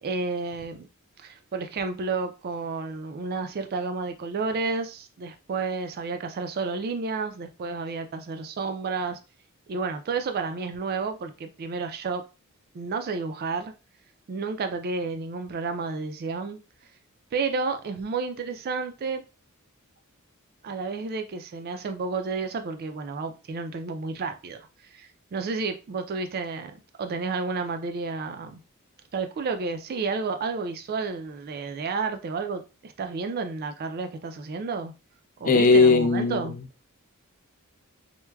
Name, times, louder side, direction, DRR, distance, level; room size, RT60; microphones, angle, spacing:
voice 1, 0.0-0.9 1.2-9.2 9.7-12.2 12.7-13.7 14.3-16.6 17.3-19.2 20.6-24.7 24.9-28.6 29.1-34.9 35.4-36.6, right 4 dB, 45° right, 0.4 m, -31 dB
voice 2, 35.5-36.4, left 3 dB, 40° left, 0.4 m, -18 dB
4.4 x 2.1 x 2.2 m
head